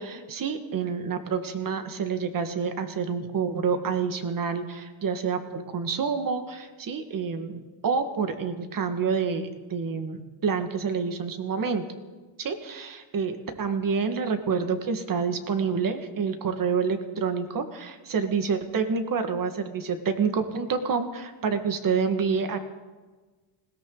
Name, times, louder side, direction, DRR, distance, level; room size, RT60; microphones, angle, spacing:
voice 1, 0.0-11.8 12.4-22.6, right 5 dB, 45° right, 7 dB, 1.9 m, -28 dB
20.0 x 17.5 x 4.0 m, 1.3 s
cardioid pair, 105°, 47 cm